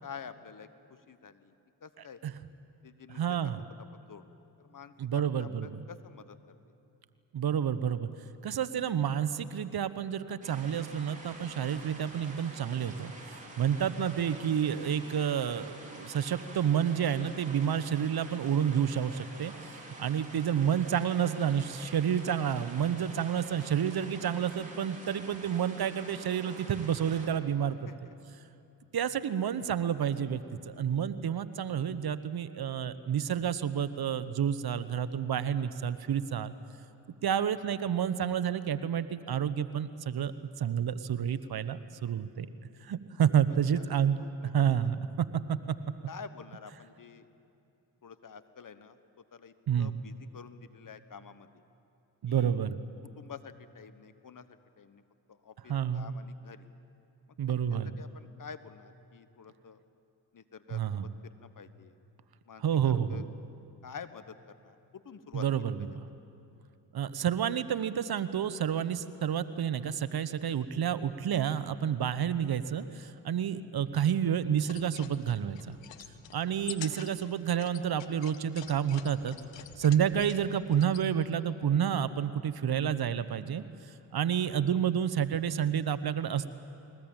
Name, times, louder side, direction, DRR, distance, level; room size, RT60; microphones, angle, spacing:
voice 1, 0.0-0.7 1.1-1.5 1.8-2.2 2.8-3.5 4.0-4.3 4.6-6.4 13.7-13.8 20.3-20.5 27.9-28.1 43.7-43.8 44.2-44.5 46.1-47.3 48.0-49.0 49.3-51.5 52.3-52.6 53.2-54.4 54.8-55.0 55.3-56.7 57.5-59.8 60.3-61.0 61.4-61.9 62.5-63.2 63.8-64.3 64.6-65.4, left 6 dB, 45° left, 12 dB, 1.3 m, -48 dB
voice 2, 2.0-2.3 3.1-3.6 5.0-5.8 7.3-8.1 8.4-13.1 13.6-28.1 28.9-36.5 37.2-40.3 40.6-42.5 42.8-44.2 44.5-45.6 49.7-50.0 52.2-52.9 55.7-56.2 57.4-57.9 60.7-61.1 62.6-63.3 65.3-66.1 66.9-75.8 76.3-79.4 79.8-86.5, right 8 dB, 55° right, 13 dB, 1.1 m, -30 dB
sound 1, 10.4-27.3, right 2 dB, 15° right, 5.3 m, -48 dB
sound 2, 74.5-81.1, left 11 dB, 80° left, 1.2 m, -48 dB
21.5 x 19.5 x 8.9 m, 2.7 s
supercardioid pair, 50°, 44 cm